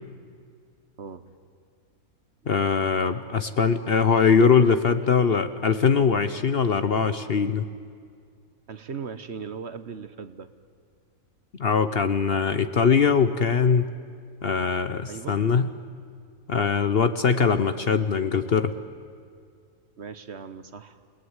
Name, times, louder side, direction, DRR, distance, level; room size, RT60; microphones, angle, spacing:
voice 1, 2.5-7.6 11.6-13.9 14.4-15.7 16.5-18.7, left 6 dB, 50° left, 11 dB, 0.9 m, -21 dB
voice 2, 8.7-10.5 15.0-15.4 20.0-21.0, right 6 dB, 50° right, 11 dB, 1.2 m, -38 dB
28.5 x 19.5 x 9.7 m, 2.2 s
omnidirectional pair, 1.5 m